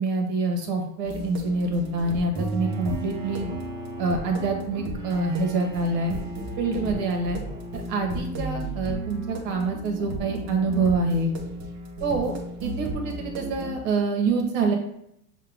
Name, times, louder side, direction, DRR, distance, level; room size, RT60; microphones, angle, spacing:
voice 1, 0.0-3.5 4.0-6.2 6.6-7.4 7.7-11.3 12.0-12.3 12.6-14.8, right 3 dB, 70° right, 2 dB, 1.2 m, -26 dB
sound 1, 1.0-13.8, right 2 dB, 45° right, 1.2 m, -34 dB
Bowed string instrument, 2.6-8.7, left 1 dB, 10° right, 0.4 m, -42 dB
6.4 x 2.3 x 3.4 m, 0.77 s
supercardioid pair, 130°, 50 cm